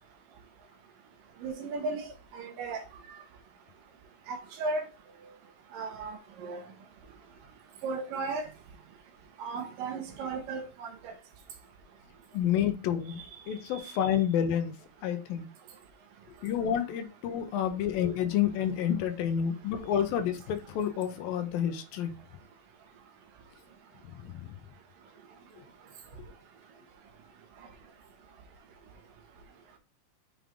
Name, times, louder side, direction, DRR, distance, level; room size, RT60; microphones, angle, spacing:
voice 1, 1.4-2.1 2.3-2.8 4.3-4.8 5.7-6.2 6.4-6.6 7.8-8.5 9.4-11.1, right 3 dB, 70° right, 2.8 m, -35 dB
voice 2, 12.3-14.7 15.0-15.5 16.4-22.1 24.2-24.5, left 9 dB, 75° left, 2.7 m, -29 dB
7.2 x 5.6 x 3.7 m
omnidirectional pair, 4.2 m